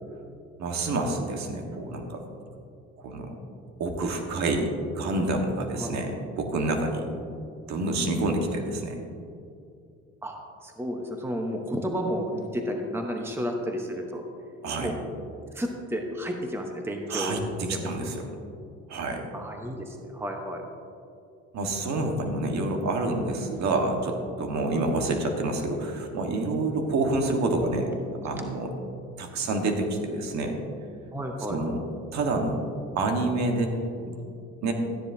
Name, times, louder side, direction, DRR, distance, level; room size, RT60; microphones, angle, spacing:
voice 1, 0.6-2.2 3.0-3.3 3.8-7.1 7.7-9.0 14.6-14.9 17.1-18.2 18.9-19.2 21.5-27.9 28.2-28.7 29.2-30.6 31.5-31.8 32.1-32.6 32.9-33.7 34.0-34.1 34.6-34.7, right 2 dB, 70° right, 3 dB, 1.5 m, -28 dB
voice 2, 10.6-14.2 14.8-15.0 15.5-17.4 17.7-17.9 19.3-20.6 31.1-31.6, equal, 10° right, 2 dB, 1.0 m, -32 dB
13.5 x 9.9 x 2.8 m, 2.5 s
cardioid pair, 95°, 29 cm